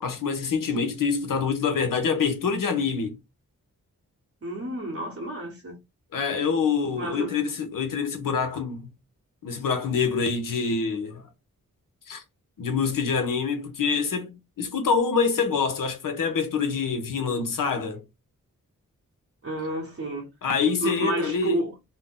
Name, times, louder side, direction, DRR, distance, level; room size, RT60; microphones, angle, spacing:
voice 1, 0.0-3.2 6.1-8.9 9.4-11.3 12.1-12.2 12.6-18.0 20.4-21.6, left 5 dB, 80° left, 0.8 m, -26 dB
voice 2, 4.4-5.7 7.0-7.5 19.4-20.3 20.8-21.7, right 1 dB, 45° right, 0.9 m, -30 dB
2.6 x 2.1 x 3.6 m
cardioid pair, 70°, 32 cm